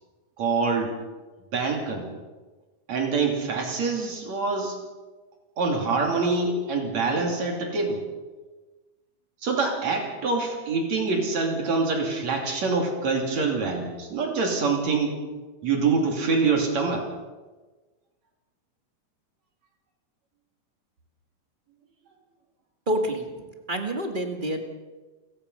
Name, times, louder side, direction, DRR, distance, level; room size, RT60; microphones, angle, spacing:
voice 1, 0.4-1.0 1.5-2.1 2.9-4.8 5.6-8.0 9.4-15.2 15.6-17.1, right 4 dB, 55° right, 2 dB, 4.0 m, -25 dB
voice 2, 22.9-23.2 23.7-24.6, right 1 dB, 25° right, 4 dB, 1.2 m, -27 dB
29.5 x 16.5 x 5.6 m, 1.3 s
omnidirectional pair, 3.7 m